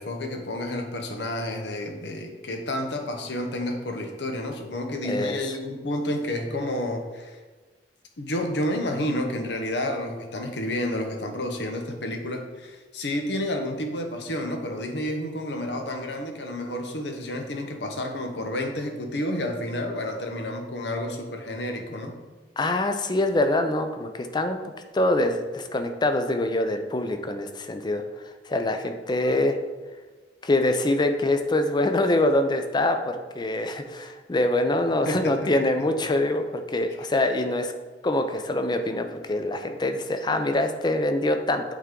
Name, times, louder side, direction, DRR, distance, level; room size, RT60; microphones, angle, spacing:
voice 1, 0.0-7.4 8.2-22.1 35.0-35.5, left 1 dB, 70° left, 4 dB, 0.9 m, -30 dB
voice 2, 5.0-5.4 22.6-24.6 24.9-28.0 28.5-29.6 30.4-37.7 38.0-41.6, left 1 dB, 25° left, 7 dB, 0.5 m, -24 dB
8.3 x 3.6 x 3.7 m, 1.3 s
head